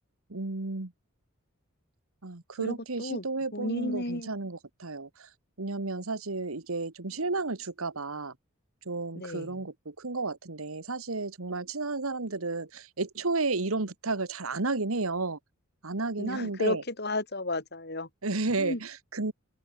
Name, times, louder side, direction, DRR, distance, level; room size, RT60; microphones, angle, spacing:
voice 1, 0.3-0.9 2.2-5.3 5.6-8.3 8.8-15.4 15.8-16.8 18.2-19.3, right 3 dB, 90° right, 1.7 m, -32 dB
voice 2, 2.6-3.2 3.5-4.3 9.1-9.6 16.2-18.1 18.6-18.8, left 1 dB, 50° left, 7.6 m, -33 dB
open air
head